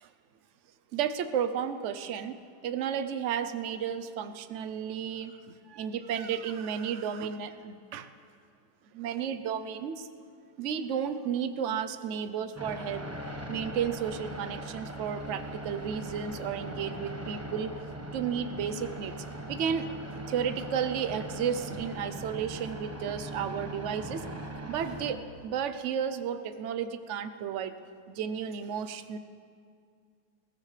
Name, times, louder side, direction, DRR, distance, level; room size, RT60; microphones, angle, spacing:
voice 1, 0.9-2.4 2.6-8.1 8.9-10.1 10.6-13.1 13.5-17.7 18.1-19.2 19.5-19.9 20.3-24.3 24.7-27.8 28.1-29.2, right 8 dB, 60° right, 10 dB, 0.8 m, -33 dB
sound 1, 12.5-25.1, right 1 dB, 10° right, 0.8 m, -40 dB
20.5 x 18.0 x 3.3 m, 2.3 s
omnidirectional pair, 1.9 m